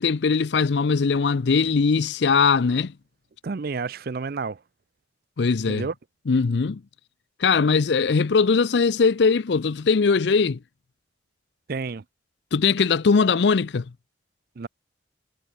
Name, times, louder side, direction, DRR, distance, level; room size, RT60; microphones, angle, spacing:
voice 1, 0.0-2.9 5.4-5.9 6.3-6.8 7.4-10.6 12.5-13.8, left 5 dB, 65° left, 0.5 m, -20 dB
voice 2, 3.4-4.6 5.7-5.9 11.7-12.0 14.6-14.7, right 4 dB, 50° right, 0.5 m, -30 dB
head